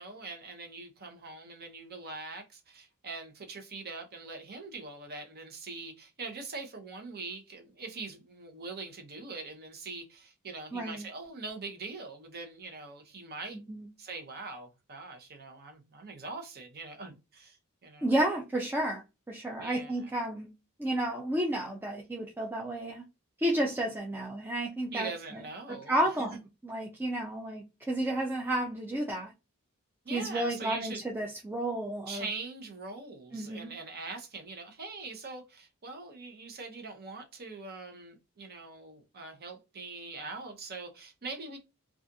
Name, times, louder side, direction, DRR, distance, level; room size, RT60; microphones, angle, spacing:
voice 1, 0.0-13.6 14.0-18.1 19.6-20.1 24.9-25.9 26.2-26.4 30.0-31.0 32.1-41.6, right 3 dB, 45° right, 0.7 m, -42 dB
voice 2, 10.7-11.0 13.7-13.9 18.0-19.0 19.3-20.5 20.8-23.0 23.4-25.4 25.9-26.4 26.6-29.3 30.1-32.2 33.3-33.7, right 1 dB, 10° right, 0.4 m, -31 dB
2.4 x 2.4 x 2.6 m
head